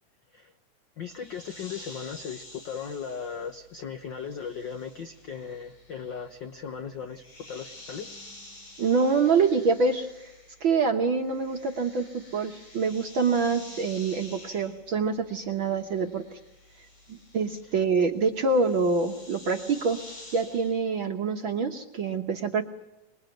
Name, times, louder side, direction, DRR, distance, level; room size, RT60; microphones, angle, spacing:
voice 1, 1.0-8.1, left 6 dB, 75° left, 8 dB, 1.0 m, -37 dB
sound 1, 1.1-10.8 11.1-20.8, left 1 dB, 90° left, 9.5 m, -49 dB
voice 2, 8.8-10.3 10.6-16.4 17.1-20.0 20.3-22.6, right 4 dB, 55° right, 4 dB, 1.4 m, -26 dB
26.5 x 21.0 x 9.1 m, 0.91 s
omnidirectional pair, 3.6 m